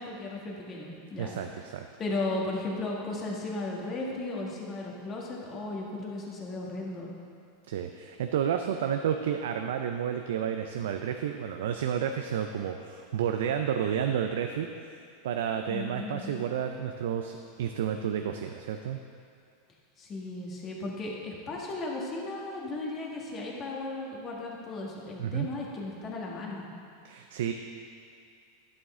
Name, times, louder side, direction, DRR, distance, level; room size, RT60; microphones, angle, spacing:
voice 1, 0.0-1.3 2.0-7.1 15.7-16.4 20.0-26.7, left 2 dB, 30° left, -2 dB, 1.7 m, -35 dB
voice 2, 1.2-1.9 7.7-14.7 15.2-19.0 25.2-25.5 27.0-27.5, right 8 dB, 80° right, 6 dB, 0.4 m, -31 dB
11.0 x 6.2 x 3.7 m, 2.3 s
supercardioid pair, 120°, 0 cm